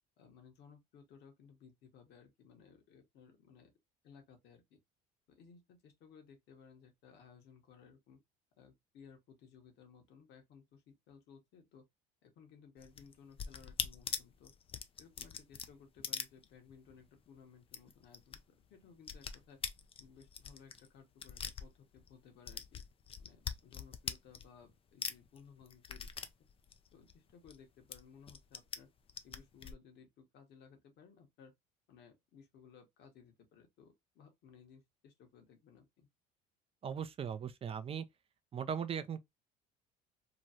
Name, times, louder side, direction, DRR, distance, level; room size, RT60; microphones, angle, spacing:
voice 1, 0.2-3.7 4.0-4.8 5.3-8.2 8.6-11.8 12.2-14.5 15.0-18.4 18.7-19.6 20.0-22.8 23.2-26.1 26.9-28.9 29.2-31.5 31.9-36.1, left 6 dB, 60° left, 1.2 m, -60 dB
sound 1, 12.8-17.0 17.3-17.4 17.6-18.4 18.6-22.1 22.5-24.7 25.0-27.6 27.9-28.8 29.1-29.7, left 7 dB, 30° left, 0.4 m, -42 dB
voice 2, 36.8-38.0 38.5-39.2, right 7 dB, 30° right, 0.5 m, -38 dB
3.1 x 2.3 x 2.6 m
supercardioid pair, 90°, 19 cm